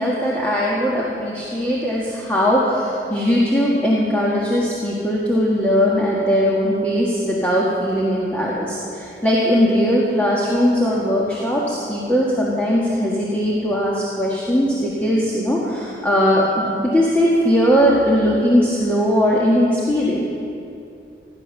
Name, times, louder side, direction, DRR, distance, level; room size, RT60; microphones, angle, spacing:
voice 1, 0.0-20.2, equal, 10° left, -6 dB, 1.7 m, -19 dB
17.0 x 11.0 x 6.5 m, 2.6 s
head